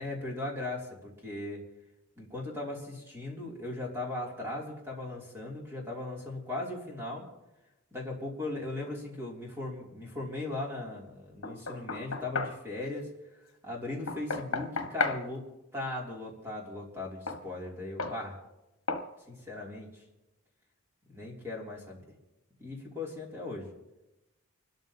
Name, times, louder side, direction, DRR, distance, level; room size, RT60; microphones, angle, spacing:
voice 1, 0.0-1.6 2.2-7.3 7.9-13.1 13.6-15.4 15.7-18.4 19.3-20.0 21.1-22.0 22.6-23.7, left 2 dB, 10° right, -3 dB, 3.0 m, -38 dB
Knock, 11.4-12.6 14.1-15.2 17.3-17.4 18.0-18.2 18.9-19.1, left 4 dB, 70° left, 1.3 m, -33 dB
30.0 x 13.0 x 2.9 m, 0.96 s
head